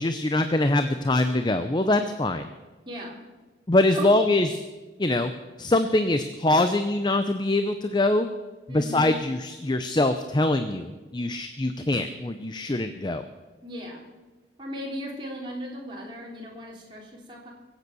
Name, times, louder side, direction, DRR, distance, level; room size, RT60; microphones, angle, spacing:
voice 1, 0.0-2.5 3.7-4.6 5.0-5.3 5.6-8.3 8.7-13.2, left 2 dB, 25° left, 9 dB, 0.6 m, -23 dB
voice 2, 2.9-3.2 3.9-4.2 8.7-9.1 13.6-14.0 14.6-17.5, equal, 25° right, -3 dB, 3.7 m, -36 dB
23.0 x 8.2 x 6.9 m, 1.2 s
head